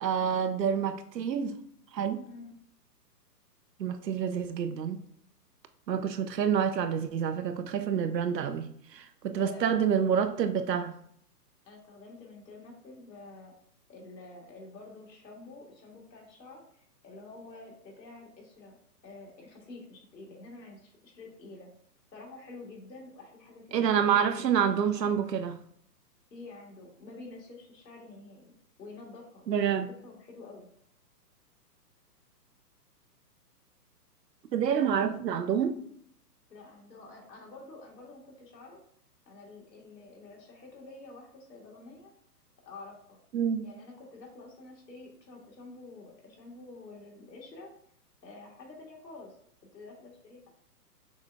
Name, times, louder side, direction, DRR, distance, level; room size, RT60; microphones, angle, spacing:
voice 1, 0.0-1.5 1.9-2.2 3.8-5.0 5.9-11.0 23.7-25.6 29.5-29.9 34.5-35.8 43.3-43.7, right 8 dB, 85° right, 0.7 m, -28 dB
voice 2, 2.2-2.6 9.4-10.4 11.7-13.5 13.9-16.6 17.0-18.8 19.0-21.7 22.1-24.5 24.9-25.1 26.3-30.7 34.9-35.1 36.5-38.8 39.3-42.1 42.7-43.2 43.6-47.7 48.2-49.4 49.7-50.6, left 3 dB, 85° left, 1.9 m, -48 dB
6.1 x 2.4 x 3.4 m
hypercardioid pair, 150°, 49 cm